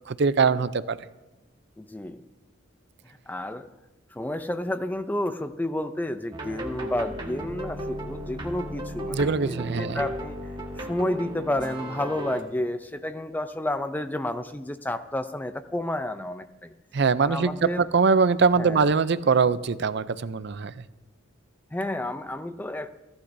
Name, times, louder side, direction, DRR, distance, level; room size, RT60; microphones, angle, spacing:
voice 1, 0.1-1.0 9.1-10.0 16.9-20.7, right 5 dB, 55° right, 14 dB, 0.5 m, -22 dB
voice 2, 1.8-2.2 3.3-3.7 4.1-10.4 10.8-16.7 17.2-17.8 18.6-18.8 21.7-22.9, left 1 dB, 10° left, 10 dB, 0.4 m, -30 dB
sound 1, 6.3-12.4, right 1 dB, 20° right, 1.5 m, -35 dB
29.0 x 11.5 x 2.7 m, 1.0 s
head